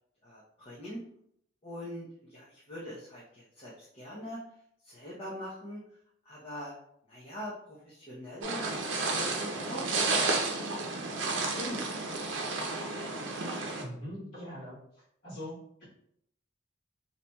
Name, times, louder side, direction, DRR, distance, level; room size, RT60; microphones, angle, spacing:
voice 1, 0.2-1.0 1.6-4.4 4.8-5.8 6.2-6.7 7.1-10.7 11.4-12.2, equal, 30° left, -7 dB, 0.7 m, -43 dB
sound 1, 8.4-13.8, right 3 dB, 80° right, 0.6 m, -32 dB
voice 2, 13.8-14.8 15.2-15.8, equal, 55° left, -10 dB, 1.4 m, -42 dB
4.2 x 2.8 x 2.2 m, 0.71 s
head